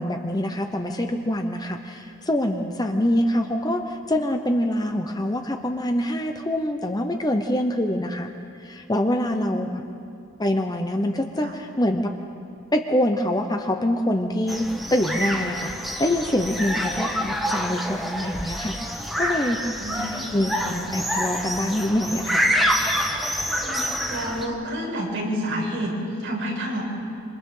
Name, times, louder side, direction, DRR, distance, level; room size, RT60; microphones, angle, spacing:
voice 1, 0.0-8.3 8.6-9.8 10.4-12.1 12.7-15.7 16.0-18.8 19.2-19.7 20.3-22.4, left 1 dB, 15° left, 4 dB, 0.8 m, -25 dB
sound 1, 14.5-24.5, equal, ahead, 1.3 m, -27 dB
voice 2, 19.8-20.2 20.6-20.7 23.6-26.8, equal, 55° right, -6 dB, 7.3 m, -29 dB
27.5 x 26.5 x 3.9 m, 2.4 s
head